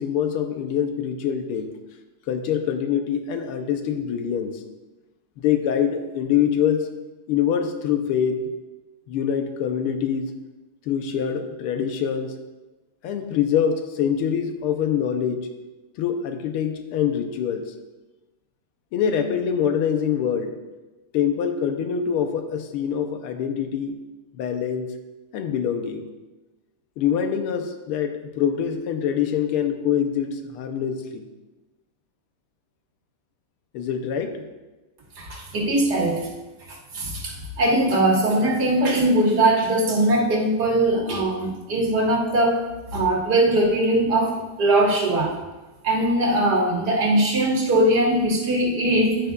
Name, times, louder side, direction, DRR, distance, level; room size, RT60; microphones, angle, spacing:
voice 1, 0.0-1.7 2.3-4.6 5.4-6.9 7.3-8.5 9.1-10.3 10.9-12.3 13.0-15.5 16.0-17.7 18.9-20.5 21.1-24.0 24.3-24.9 25.3-26.1 27.0-31.3 33.7-34.5, left 8 dB, 85° left, 6 dB, 1.6 m, -24 dB
voice 2, 35.2-36.3 36.7-42.7 42.9-45.4 45.8-49.2, right 1 dB, 50° right, -3 dB, 2.2 m, -21 dB
11.5 x 9.3 x 2.3 m, 1.1 s
omnidirectional pair, 2.4 m